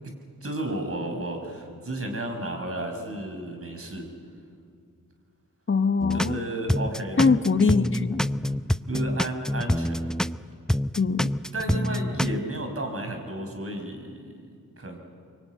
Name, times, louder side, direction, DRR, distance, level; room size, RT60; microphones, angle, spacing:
voice 1, 0.4-4.1 6.1-7.3 8.9-10.0 11.5-14.5 14.8-15.0, right 1 dB, 45° right, 4 dB, 5.3 m, -33 dB
voice 2, 5.7-6.4 7.2-8.3 11.0-11.3, left 4 dB, 40° left, 10 dB, 1.2 m, -22 dB
sound 1, 6.0-6.4 6.7-10.4 10.7-12.4, left 1 dB, ahead, 0.6 m, -26 dB
23.5 x 23.5 x 9.3 m, 2.3 s
cardioid pair, 60°, 32 cm